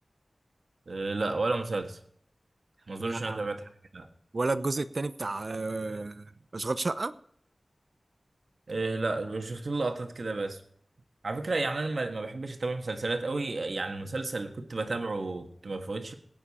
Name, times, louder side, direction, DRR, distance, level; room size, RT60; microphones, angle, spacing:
voice 1, 0.9-2.0 2.9-4.1 8.7-10.6 11.2-16.1, right 3 dB, 75° right, 1.5 m, -32 dB
voice 2, 3.0-3.4 4.3-7.1, right 3 dB, 55° right, 0.7 m, -32 dB
17.5 x 9.2 x 4.3 m
wide cardioid pair, 80°, 0 cm